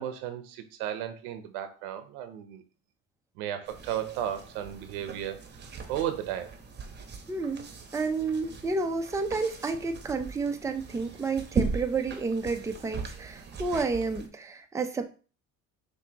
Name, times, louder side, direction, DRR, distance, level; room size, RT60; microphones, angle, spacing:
voice 1, 0.0-2.6 3.4-6.5 8.2-8.3, right 10 dB, 90° right, 9 dB, 0.8 m, -35 dB
sound 1, 3.6-14.3, right 5 dB, 30° right, 0.9 m, -38 dB
voice 2, 7.3-7.7 7.9-15.1, right 4 dB, 10° right, 6 dB, 0.5 m, -30 dB
6.2 x 2.8 x 2.8 m, 0.37 s
supercardioid pair, 95°, 36 cm